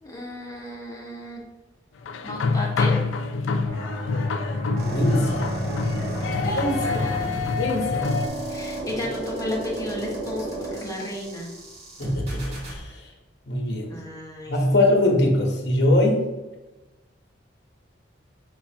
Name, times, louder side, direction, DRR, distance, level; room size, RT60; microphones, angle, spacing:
voice 1, 0.0-1.4 2.2-3.0 6.4-7.7 8.5-11.5 13.9-14.5, left 1 dB, 20° left, -2 dB, 0.8 m, -34 dB
sound 1, 2.1-8.3, left 4 dB, 85° left, 0.4 m, -26 dB
sound 2, 3.7-9.0, left 1 dB, 60° right, 1.0 m, -33 dB
voice 2, 4.8-5.5 6.4-7.1 7.6-8.1 12.0-13.1 13.5-13.9 14.5-16.2, left 1 dB, 60° left, 1 dB, 0.8 m, -22 dB
sound 3, 4.8-12.8, right 2 dB, 35° right, 1.3 m, -33 dB
6.5 x 2.4 x 2.7 m, 1.1 s
head